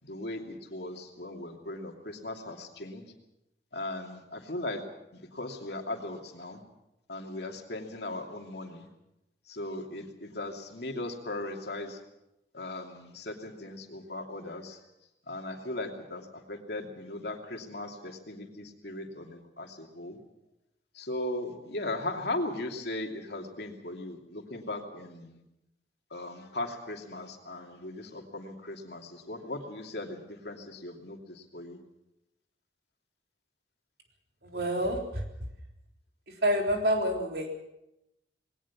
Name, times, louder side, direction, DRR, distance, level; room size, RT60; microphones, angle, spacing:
voice 1, 0.0-3.0 3.7-4.8 5.1-6.6 7.1-8.8 9.5-12.0 12.5-14.8 15.3-20.2 20.9-25.4 26.1-31.8, left 2 dB, 60° left, 2 dB, 2.8 m, -38 dB
voice 2, 34.4-35.2 36.3-37.6, equal, 55° right, 2 dB, 3.8 m, -28 dB
21.0 x 18.0 x 7.3 m, 0.90 s
head